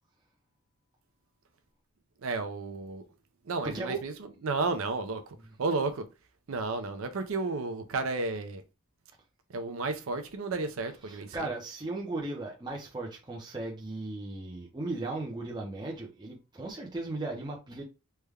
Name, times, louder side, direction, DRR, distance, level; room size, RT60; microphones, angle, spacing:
voice 1, 2.2-3.0 3.5-4.1 4.4-6.1 6.5-8.6 9.5-11.5, right 3 dB, 65° right, 0.5 m, -32 dB
voice 2, 3.6-4.0 11.1-17.8, right 2 dB, 20° right, 0.5 m, -36 dB
3.3 x 2.1 x 3.4 m
head